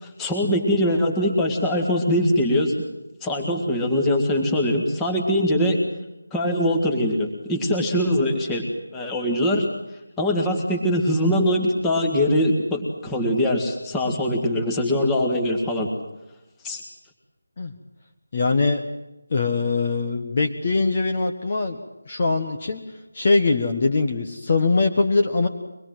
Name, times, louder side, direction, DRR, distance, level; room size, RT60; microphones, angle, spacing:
voice 1, 0.0-2.7 3.2-5.8 6.3-8.6 8.9-9.7 10.2-15.9 16.6-16.8, left 1 dB, 5° left, 1 dB, 2.0 m, -22 dB
voice 2, 18.3-18.8 19.3-21.8 22.1-22.8 23.1-25.5, left 3 dB, 30° left, 4 dB, 1.4 m, -22 dB
24.0 x 21.0 x 7.7 m, 0.96 s
figure-of-eight pair, 175°, 0 cm